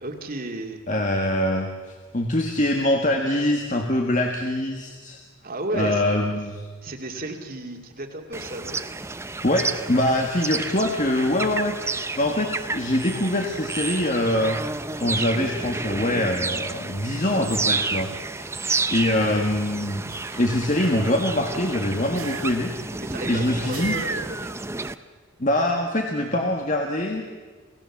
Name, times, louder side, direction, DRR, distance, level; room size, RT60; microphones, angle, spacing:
voice 1, 0.0-0.8 5.4-6.0 6.8-8.8 23.0-24.5, right 1 dB, 40° right, 3 dB, 2.4 m, -33 dB
voice 2, 0.9-5.2 5.7-6.7 9.4-14.6 15.0-18.1 18.4-20.0 20.3-22.7 23.3-23.9 25.4-27.3, left 1 dB, 35° left, 2 dB, 1.7 m, -24 dB
sound 1, 8.3-24.9, right 3 dB, 10° right, 0.6 m, -31 dB
sound 2, 20.1-21.3 22.2-22.9 23.7-24.5, right 6 dB, 85° right, 2.3 m, -40 dB
28.5 x 17.5 x 7.2 m, 1.5 s
head